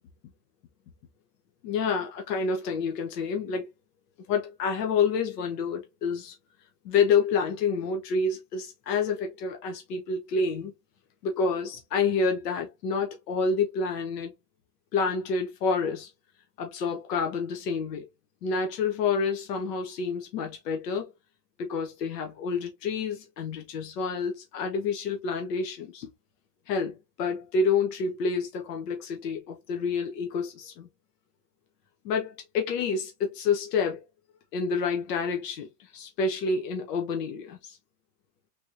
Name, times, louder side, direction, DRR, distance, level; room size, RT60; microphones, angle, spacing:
voice 1, 1.6-3.7 4.3-6.3 6.8-10.7 11.2-14.3 14.9-16.1 16.6-18.0 18.4-21.1 21.6-26.1 26.7-30.9 32.0-34.0 34.5-37.8, left 5 dB, 85° left, 0.9 m, -28 dB
3.5 x 2.9 x 2.5 m
supercardioid pair, 170°, 47 cm